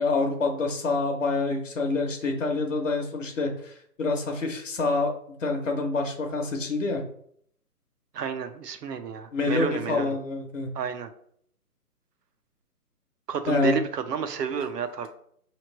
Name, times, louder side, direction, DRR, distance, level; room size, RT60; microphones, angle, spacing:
voice 1, 0.0-3.7 4.0-5.1 5.4-7.0 9.3-10.7 13.5-13.8, left 3 dB, 55° left, 3 dB, 0.8 m, -26 dB
voice 2, 8.1-10.2 10.7-11.1 13.3-15.1, right 6 dB, 90° right, 9 dB, 0.7 m, -31 dB
5.0 x 3.1 x 3.0 m, 0.66 s
hypercardioid pair, 165°, 47 cm